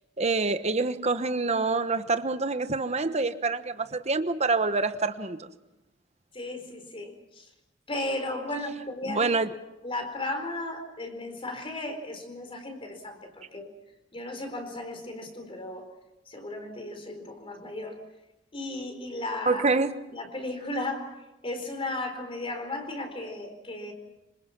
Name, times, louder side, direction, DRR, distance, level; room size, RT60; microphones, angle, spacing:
voice 1, 0.2-5.5 9.1-9.5 19.5-19.9, right 3 dB, 35° right, 1.2 m, -26 dB
voice 2, 6.3-7.5 7.9-9.3 9.8-13.7 14.1-15.9 16.3-18.0 18.5-19.6 20.1-21.2 21.4-23.9, left 2 dB, 30° left, 4.5 m, -35 dB
26.5 x 26.0 x 6.0 m
head